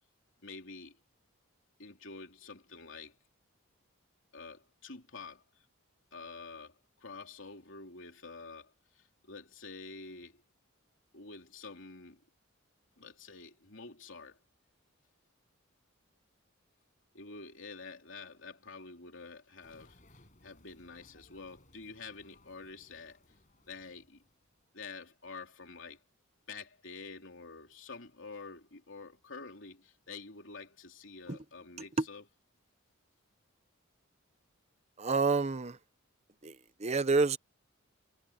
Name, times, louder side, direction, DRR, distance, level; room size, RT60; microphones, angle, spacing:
voice 1, 0.4-1.0 1.8-3.2 4.3-5.7 6.1-10.4 11.1-12.2 13.0-14.4 17.1-23.2 23.7-24.2 24.7-26.0 26.5-32.2, left 4 dB, 65° left, 3.5 m, -48 dB
sound 1, 19.6-24.6, left 1 dB, 40° left, 5.5 m, -64 dB
voice 2, 35.0-35.8 36.4-37.4, right 4 dB, 30° right, 0.7 m, -28 dB
head